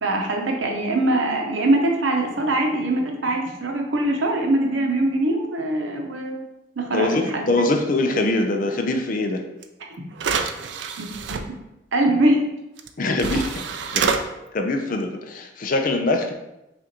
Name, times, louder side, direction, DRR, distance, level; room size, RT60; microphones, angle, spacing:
voice 1, 0.0-6.4 6.8-7.5 11.0-11.4 11.9-12.4, right 1 dB, 85° right, 2 dB, 0.7 m, -22 dB
voice 2, 6.9-9.4 13.0-13.6 13.9-14.2 14.5-16.4, left 2 dB, 45° left, 4 dB, 0.5 m, -23 dB
sound 1, 9.6-9.7 10.1-11.4 12.8-12.9 13.2-14.2, right 6 dB, 65° right, 0.3 m, -26 dB
5.6 x 2.5 x 2.9 m, 0.92 s
head